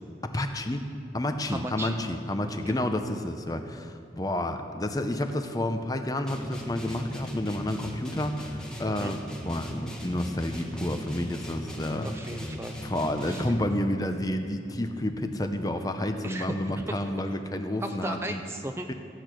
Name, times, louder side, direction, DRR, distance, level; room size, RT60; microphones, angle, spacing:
voice 1, 0.2-0.9 1.1-12.1 12.8-18.4 18.9-19.0, left 1 dB, 20° left, 7 dB, 0.7 m, -30 dB
voice 2, 1.5-2.0 2.4-2.8 8.9-9.1 12.0-12.8 13.2-13.5 16.2-17.0 17.8-18.9, right 1 dB, 15° right, 5 dB, 0.4 m, -36 dB
sound 1, 6.3-13.8, equal, 5° left, 1.2 m, -38 dB
14.5 x 8.5 x 6.2 m, 2.4 s
head